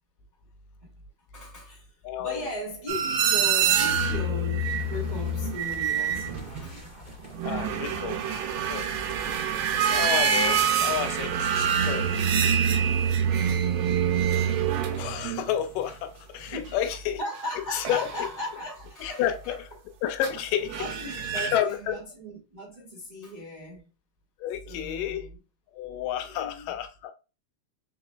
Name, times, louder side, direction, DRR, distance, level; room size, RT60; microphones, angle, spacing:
voice 1, 1.3-1.9 2.2-6.9 7.5-7.8 16.5-16.8 17.2-19.6 20.7-23.8 24.6-25.3 26.2-26.6, left 1 dB, 35° right, 0.6 m, -37 dB
voice 2, 2.0-2.4 7.4-8.2 8.7-8.9 9.9-12.1 14.9-17.2 17.7-18.3 19.0-19.7 20.0-20.8 21.4-22.0 24.4-25.3 25.7-27.1, left 10 dB, 80° left, 2.1 m, -30 dB
sound 1, 2.9-6.8 7.2-15.9 17.8-18.2 20.2-20.4 20.6-21.6, right 7 dB, 85° right, 2.5 m, -26 dB
sound 2, 3.5-14.9, left 1 dB, 10° right, 1.4 m, -47 dB
4.9 x 4.1 x 2.3 m
omnidirectional pair, 3.9 m